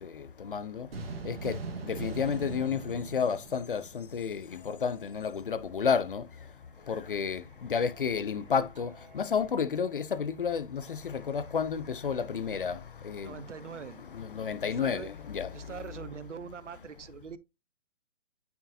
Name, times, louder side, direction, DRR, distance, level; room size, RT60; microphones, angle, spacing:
voice 1, 0.0-0.9 1.2-1.6 1.8-6.3 6.9-13.4 14.0-16.1, left 6 dB, 45° left, 0.6 m, -31 dB
sound 1, 0.9-4.4, right 3 dB, 50° right, 1.8 m, -40 dB
Singing, 4.6-12.2, left 1 dB, 5° right, 0.9 m, -58 dB
voice 2, 13.2-14.0 14.6-15.1 15.5-17.4, right 7 dB, 75° right, 0.9 m, -43 dB
9.3 x 4.5 x 2.7 m
hypercardioid pair, 165°, 37 cm